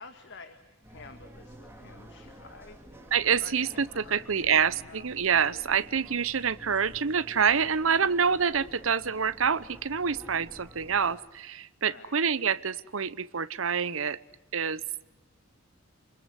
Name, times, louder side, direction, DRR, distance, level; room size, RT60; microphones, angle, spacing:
voice 1, 0.0-2.8 3.4-5.1 11.8-12.2, left 3 dB, 60° left, 7 dB, 2.0 m, -50 dB
sound 1, 0.8-11.2, equal, 10° right, 3.6 m, -50 dB
voice 2, 3.1-14.2 14.5-14.8, right 6 dB, 70° right, 16 dB, 0.9 m, -27 dB
28.5 x 21.5 x 8.1 m, 1.0 s
head